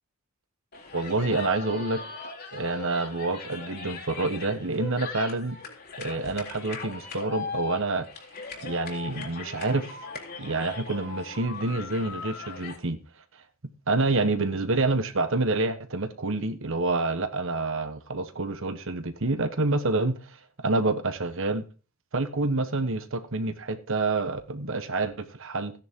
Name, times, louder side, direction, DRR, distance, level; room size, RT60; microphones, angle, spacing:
sound 1, 0.7-12.8, left 4 dB, 45° left, 3.7 m, -39 dB
voice 1, 0.9-2.0 2.5-5.6 6.0-8.1 8.6-10.0 10.4-13.0 13.9-20.4 20.6-21.6 22.1-25.7, right 2 dB, 65° right, 1.3 m, -27 dB
15.5 x 10.5 x 3.8 m
head